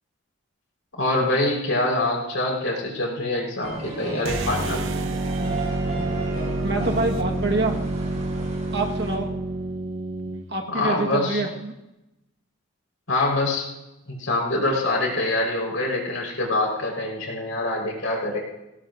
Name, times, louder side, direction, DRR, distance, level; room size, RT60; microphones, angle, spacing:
voice 1, 1.0-4.8 10.7-11.4 13.1-13.7 14.1-18.4, left 2 dB, 80° left, -2 dB, 4.6 m, -25 dB
sound 1, 3.6-9.2, right 2 dB, 35° right, 4.7 m, -35 dB
sound 2, 4.2-10.5, right 2 dB, 70° right, 1.0 m, -28 dB
voice 2, 6.6-7.8 8.7-9.3 10.5-11.7, right 2 dB, 55° right, 2 dB, 1.5 m, -26 dB
19.0 x 17.5 x 2.6 m, 0.95 s
head